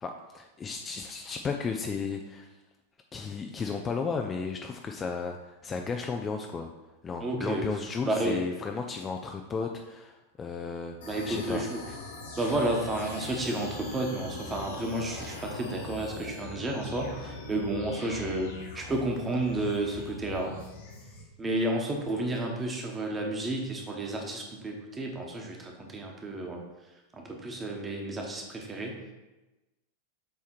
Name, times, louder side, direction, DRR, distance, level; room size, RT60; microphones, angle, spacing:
voice 1, 0.0-2.5 3.1-6.7 7.0-11.0 11.2-11.7, left 5 dB, 20° left, 3 dB, 0.5 m, -34 dB
voice 2, 7.2-7.7 8.0-8.4 11.0-11.8 12.3-20.5 21.4-26.6 27.1-29.1, right 1 dB, 15° right, 1 dB, 1.3 m, -31 dB
sound 1, 11.0-21.2, left 2 dB, 60° left, 1.6 m, -42 dB
7.5 x 3.5 x 4.5 m, 1.1 s
figure-of-eight pair, 90°, 0 cm